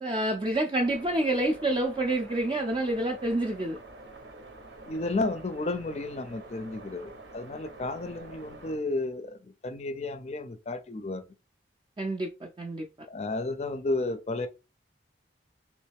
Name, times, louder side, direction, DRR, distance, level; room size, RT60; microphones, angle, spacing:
voice 1, 0.0-3.8 12.0-12.9, right 1 dB, 25° right, 0.4 m, -28 dB
sound 1, 0.7-8.8, right 2 dB, 75° right, 0.9 m, -47 dB
voice 2, 4.9-11.2 13.1-14.5, left 2 dB, 35° left, 0.4 m, -32 dB
3.1 x 3.0 x 3.4 m
head